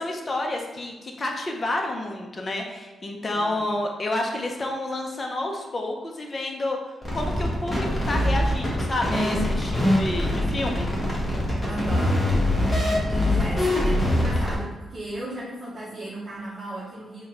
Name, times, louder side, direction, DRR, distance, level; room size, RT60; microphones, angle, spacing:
voice 1, 0.0-6.8 7.1-10.9, left 2 dB, 30° left, 1 dB, 0.6 m, -29 dB
voice 2, 3.3-3.7 11.6-12.3 12.7-17.3, right 2 dB, 30° right, -7 dB, 0.8 m, -35 dB
sound 1, 7.0-14.5, left 1 dB, 15° left, 1.4 m, -23 dB
4.4 x 2.2 x 4.4 m, 1.1 s
cardioid pair, 115°, 0 cm